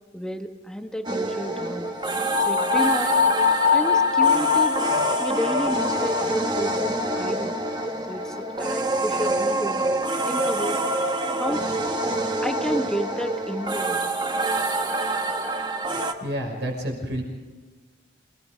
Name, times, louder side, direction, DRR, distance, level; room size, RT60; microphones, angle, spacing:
voice 1, 0.1-1.9 2.5-3.2 3.7-4.8 5.2-7.6 8.1-9.9 10.2-10.8 11.3-11.7 12.4-14.1, equal, 5° left, 5 dB, 1.3 m, -31 dB
sound 1, 1.0-16.1, right 2 dB, 25° right, 1.3 m, -26 dB
sound 2, 2.3-7.4, left 7 dB, 85° left, 0.6 m, -23 dB
voice 2, 15.9-17.2, equal, 65° right, 2 dB, 6.0 m, -30 dB
28.5 x 19.0 x 5.2 m, 1.3 s
head